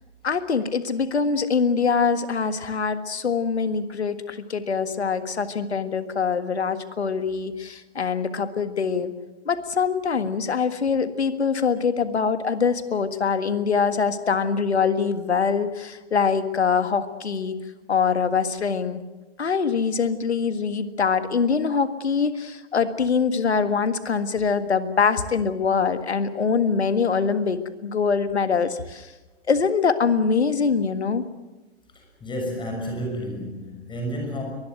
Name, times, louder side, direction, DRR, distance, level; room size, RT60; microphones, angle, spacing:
voice 1, 0.2-9.1 9.5-17.6 17.9-19.0 19.4-29.1 29.5-31.2, left 5 dB, 75° left, 11 dB, 1.8 m, -23 dB
voice 2, 32.2-34.4, equal, 15° left, 2 dB, 6.3 m, -30 dB
23.0 x 20.5 x 8.0 m, 1.1 s
figure-of-eight pair, 105°, 33 cm